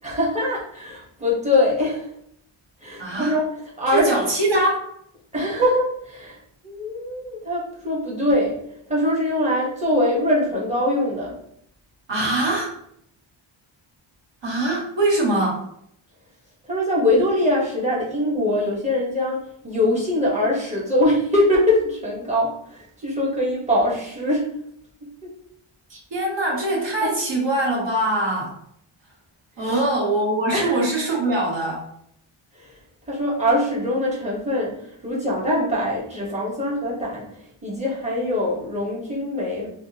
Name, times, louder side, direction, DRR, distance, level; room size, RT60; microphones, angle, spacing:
voice 1, 0.0-2.1 2.8-3.5 3.8-4.2 5.3-6.4 6.6-8.6 8.9-11.3 16.7-24.5 25.0-25.3 27.0-27.1 29.6-29.8 30.5-30.8 32.5-32.8 33.1-39.7, left 1 dB, 15° right, -5 dB, 1.0 m, -23 dB
voice 2, 3.0-3.3 3.9-4.8 12.1-12.7 14.4-15.6 25.9-28.5 29.6-31.8, right 2 dB, 60° right, -3 dB, 1.3 m, -22 dB
3.4 x 2.3 x 2.7 m, 0.72 s
wide cardioid pair, 120°, 49 cm